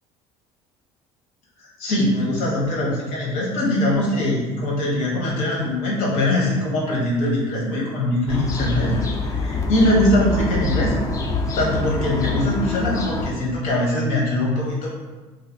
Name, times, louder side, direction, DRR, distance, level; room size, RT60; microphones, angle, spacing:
voice 1, 1.6-11.0 11.5-14.9, left 1 dB, 80° left, -4 dB, 1.0 m, -22 dB
sound 1, 8.3-13.3, left 3 dB, 30° left, 0.3 m, -25 dB
3.2 x 2.4 x 2.6 m, 1.2 s
cardioid pair, 125°, 12 cm